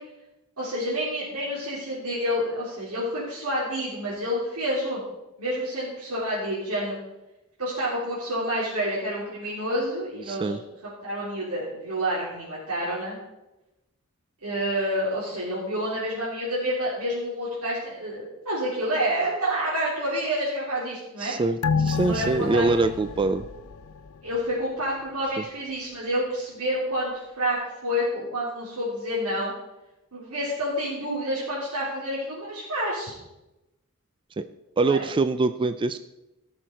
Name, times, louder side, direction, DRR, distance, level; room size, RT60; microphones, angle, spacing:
voice 1, 0.6-5.0 5.4-7.0 7.6-10.5 10.8-13.2 14.4-21.3 21.7-22.9 24.2-29.5 30.1-33.2 34.8-35.1, equal, 85° right, -8 dB, 3.4 m, -28 dB
voice 2, 10.3-10.6 21.2-23.4 25.4-25.5 34.4-34.5 34.8-36.0, right 3 dB, 20° right, 11 dB, 0.3 m, -24 dB
sound 1, 21.6-24.5 24.9-25.0, left 5 dB, 70° left, 0.6 m, -29 dB
17.0 x 6.4 x 4.5 m, 0.96 s
head